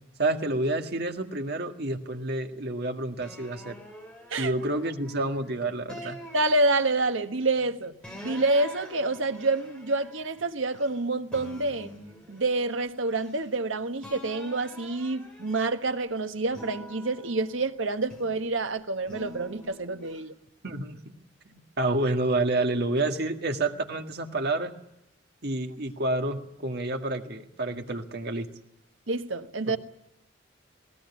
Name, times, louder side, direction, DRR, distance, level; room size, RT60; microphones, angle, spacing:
voice 1, 0.2-3.8 4.4-6.2 20.6-21.0 21.5-24.7 25.4-28.5 29.7-29.8, right 2 dB, 55° right, 1.9 m, -29 dB
sound 1, 3.2-5.4 5.9-7.2 8.0-11.0 11.3-13.7 14.0-16.0 16.5-18.5 19.1-20.2, equal, 5° left, 5.1 m, -46 dB
voice 2, 6.3-11.9 12.3-20.3 29.1-29.8, right 2 dB, 85° right, 1.3 m, -28 dB
20.0 x 18.0 x 9.6 m
head